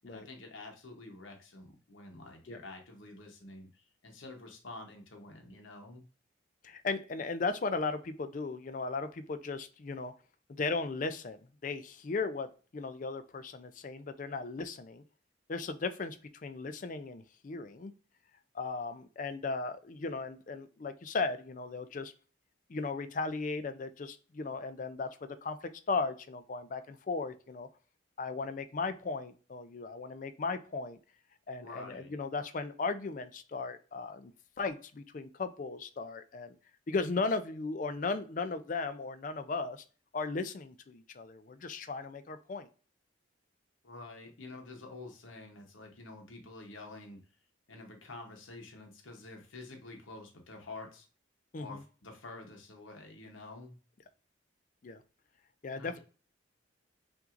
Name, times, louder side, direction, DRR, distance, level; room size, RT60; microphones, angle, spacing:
voice 1, 0.1-6.0 31.5-32.1 43.8-47.2 47.7-51.1 51.6-53.8 55.7-56.0, left 2 dB, 85° left, 3 dB, 0.9 m, -48 dB
voice 2, 6.6-10.1 10.5-15.0 15.5-17.9 18.5-22.1 22.7-27.7 28.2-31.0 31.5-34.3 34.6-36.6 36.9-39.8 40.1-42.7 51.5-51.8 54.8-55.0 55.6-56.0, left 4 dB, 40° left, 10 dB, 0.4 m, -36 dB
5.7 x 2.6 x 2.5 m, 0.38 s
head